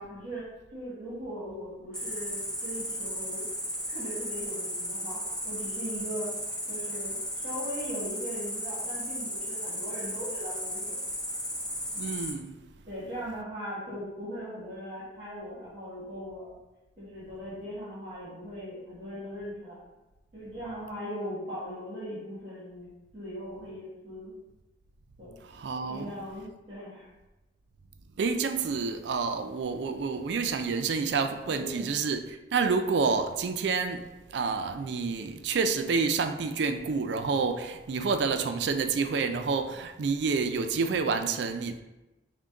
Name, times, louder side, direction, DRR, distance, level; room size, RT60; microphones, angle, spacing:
voice 1, 0.0-3.4 3.9-6.3 6.7-11.0 12.8-16.6 17.0-19.8 20.3-24.4 25.2-25.4 25.9-27.1 31.4-31.7, equal, 35° right, 1.3 m, -39 dB
Cricket, 1.9-12.3, equal, 5° left, 0.6 m, -35 dB
voice 2, 11.9-12.6 25.5-26.1 28.2-32.2 32.5-34.0 34.3-41.8, right 4 dB, 65° right, 0.4 m, -28 dB
6.0 x 2.2 x 3.8 m
head